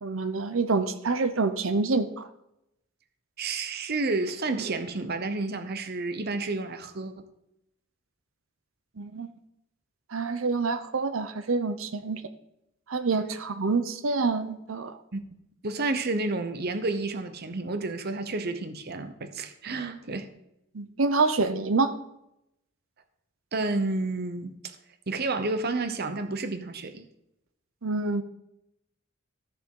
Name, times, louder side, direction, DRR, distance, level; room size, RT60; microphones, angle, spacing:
voice 1, 0.0-2.3 9.0-9.3 10.1-12.2 12.9-15.0 20.7-21.9 27.8-28.2, right 3 dB, 80° right, 0.8 m, -27 dB
voice 2, 3.4-7.1 15.1-15.2 15.6-20.3 23.5-24.8 25.1-27.1, right 3 dB, 50° right, 0.9 m, -30 dB
14.0 x 6.7 x 3.8 m
head